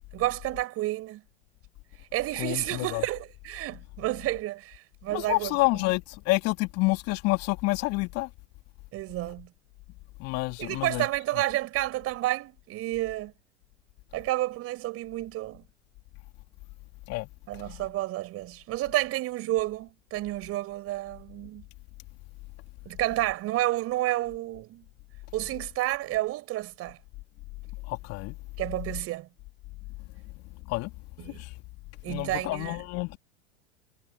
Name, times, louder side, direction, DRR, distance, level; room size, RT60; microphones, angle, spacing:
voice 1, 0.1-1.2 2.1-5.5 8.9-9.5 10.6-13.3 14.1-15.6 17.5-21.6 22.9-24.8 25.3-27.0 28.6-29.3 31.2-31.4 32.0-32.8, right 16 dB, 45° right, 5.8 m, -30 dB
voice 2, 2.4-3.0 5.1-8.3 10.2-11.1 17.1-17.3 27.9-28.4 30.7-30.9 31.4-31.5 32.1-33.2, left 22 dB, 45° left, 2.4 m, -28 dB
hypercardioid pair, 90°, 34 cm